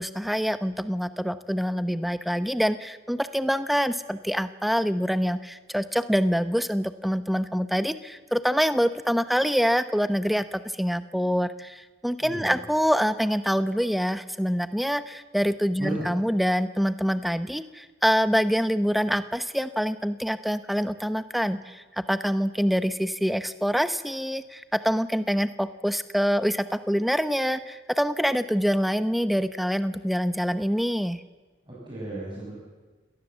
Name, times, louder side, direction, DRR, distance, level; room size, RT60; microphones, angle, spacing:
voice 1, 0.0-31.2, equal, ahead, 11 dB, 0.8 m, -25 dB
voice 2, 12.2-12.6 15.8-16.1 31.6-32.5, right 1 dB, 25° right, -6 dB, 6.4 m, -34 dB
27.5 x 18.5 x 7.3 m, 1.3 s
head